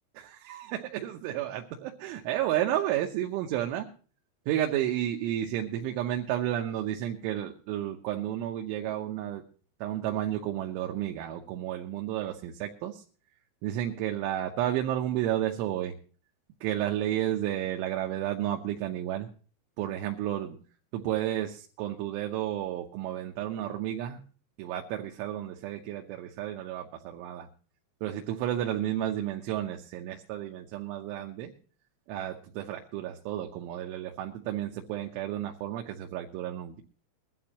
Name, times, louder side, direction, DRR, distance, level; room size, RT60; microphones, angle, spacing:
voice 1, 0.5-3.9 4.5-9.4 9.8-13.0 13.6-15.9 16.6-19.3 19.8-20.6 20.9-24.2 24.6-27.5 28.0-31.5 32.1-36.8, right 12 dB, 90° right, 2 dB, 3.4 m, -32 dB
22.0 x 11.5 x 2.9 m, 0.38 s
omnidirectional pair, 5.4 m